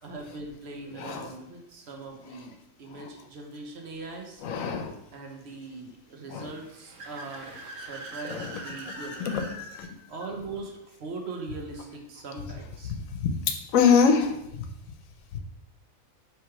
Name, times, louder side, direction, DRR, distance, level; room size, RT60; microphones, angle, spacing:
voice 1, 0.0-4.5 5.1-9.2 10.1-12.9, right 3 dB, 60° right, 1 dB, 0.9 m, -40 dB
voice 2, 0.9-1.3 2.9-3.1 4.4-4.9 6.3-6.5 8.2-8.6 8.9-9.9 13.1-13.3 13.7-14.7, left 6 dB, 90° left, 5 dB, 1.0 m, -25 dB
Car / Accelerating revving vroom, 6.3-9.6, right 3 dB, 85° right, 1.0 m, -42 dB
3.2 x 3.0 x 4.6 m, 0.83 s
omnidirectional pair, 1.4 m